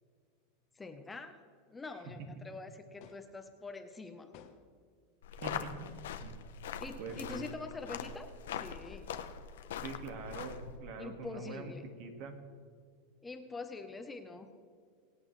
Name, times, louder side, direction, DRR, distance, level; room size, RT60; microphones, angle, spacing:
voice 1, 0.7-1.4 1.7-4.3 6.6-9.1 11.0-11.8 13.2-14.5, left 3 dB, 10° left, 6 dB, 0.9 m, -45 dB
Wet Towel Floor Impact Punch Drop Bag Cloth, 3.0-3.4 4.3-4.8 5.8-6.2 7.1-7.5 8.7-9.1 10.3-10.9, left 8 dB, 55° left, 1.2 m, -58 dB
sound 1, 5.2-10.8, left 8 dB, 85° left, 0.9 m, -42 dB
voice 2, 5.4-5.7 6.2-6.4 7.0-7.5 9.8-12.3, right 4 dB, 55° right, 5 dB, 2.0 m, -44 dB
23.5 x 8.8 x 3.3 m, 2.1 s
supercardioid pair, 130°, 0 cm